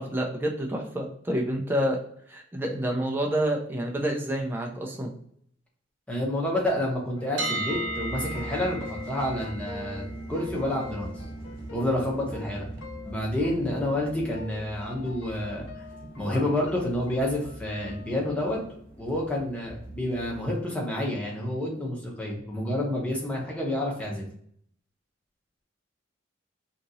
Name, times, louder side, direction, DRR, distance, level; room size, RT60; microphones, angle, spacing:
voice 1, 0.0-2.0 2.3-5.1, right 1 dB, 10° right, 0 dB, 0.4 m, -28 dB
voice 2, 6.1-11.2 11.7-12.7 13.1-15.8 16.2-18.6 19.0-24.2, left 1 dB, 5° left, -3 dB, 0.7 m, -29 dB
sound 1, 7.2-18.2, left 5 dB, 85° left, 0.5 m, -46 dB
sound 2, 7.4-19.3, right 1 dB, 65° right, 0.5 m, -39 dB
sound 3, 7.7-20.5, right 1 dB, 45° right, 0.9 m, -43 dB
2.9 x 2.8 x 2.5 m, 0.65 s
head